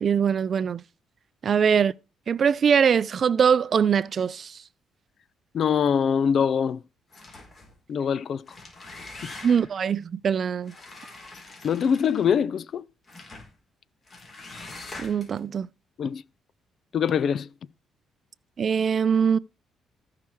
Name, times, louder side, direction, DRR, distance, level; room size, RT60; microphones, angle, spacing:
voice 1, 0.0-0.8 1.4-1.9 2.3-4.6 9.4-10.7 15.0-15.7 18.6-19.4, right 7 dB, 50° right, 0.4 m, -22 dB
voice 2, 5.5-6.8 7.9-8.5 9.2-9.3 11.6-12.9 16.0-16.2 16.9-17.5, left 7 dB, 60° left, 0.5 m, -23 dB
sound 1, 7.1-7.7 8.3-9.8 10.6-12.4 13.1-13.5 14.1-15.4, left 2 dB, 35° left, 4.7 m, -43 dB
14.5 x 5.8 x 4.6 m
cardioid pair, 90°, 0 cm